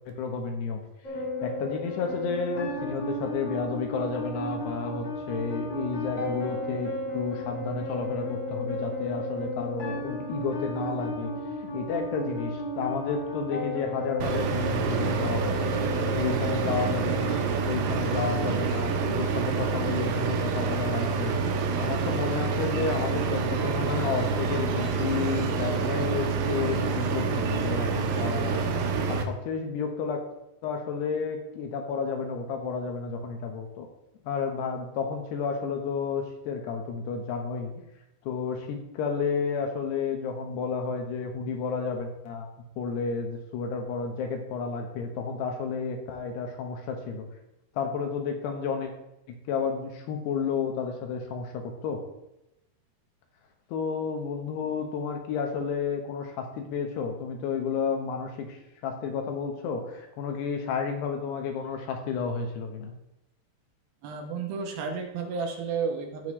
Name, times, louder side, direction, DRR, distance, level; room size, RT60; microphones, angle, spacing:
voice 1, 0.1-0.8 1.4-11.3 11.6-30.2 30.6-33.9 34.2-37.7 38.2-42.5 42.8-47.3 47.8-48.9 49.5-52.0 53.7-62.9, left 5 dB, 80° left, 4 dB, 3.2 m, -31 dB
sound 1, 1.0-18.0, left 1 dB, 45° left, 1.6 m, -34 dB
sound 2, 14.2-29.2, right 5 dB, 90° right, 3.2 m, -27 dB
voice 2, 64.0-66.3, right 5 dB, 70° right, 3 dB, 2.6 m, -32 dB
15.5 x 5.6 x 3.2 m, 0.89 s
omnidirectional pair, 4.8 m